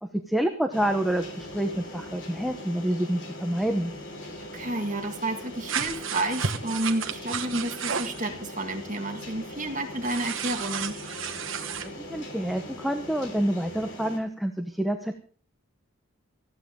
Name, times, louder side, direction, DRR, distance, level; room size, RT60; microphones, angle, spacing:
voice 1, 0.0-3.9 11.8-15.2, right 1 dB, ahead, 4 dB, 1.0 m, -28 dB
sound 1, 0.7-14.2, left 1 dB, 55° left, 3.5 m, -41 dB
voice 2, 4.5-10.9, right 2 dB, 35° right, 4 dB, 2.0 m, -30 dB
sound 2, 5.7-8.2 10.0-11.9, right 7 dB, 65° right, 1.3 m, -32 dB
19.0 x 15.0 x 3.7 m, 0.42 s
head